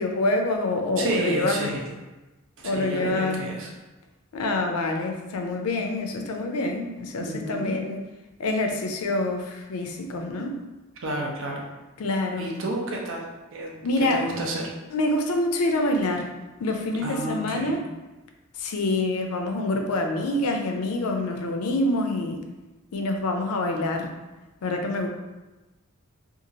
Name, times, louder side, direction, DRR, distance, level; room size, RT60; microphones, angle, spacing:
voice 1, 0.0-1.7 2.6-3.4 4.3-8.0 8.4-10.6 12.0-12.5 13.8-14.3 14.9-16.3 16.6-17.8 18.6-22.4 22.9-24.1 24.6-25.1, left 2 dB, 90° left, 4 dB, 0.4 m, -26 dB
voice 2, 1.0-1.9 2.6-3.7 7.2-7.8 11.0-11.7 12.4-14.7 17.0-17.8, right 2 dB, 65° right, 0 dB, 0.6 m, -31 dB
2.9 x 2.4 x 2.7 m, 1.1 s
head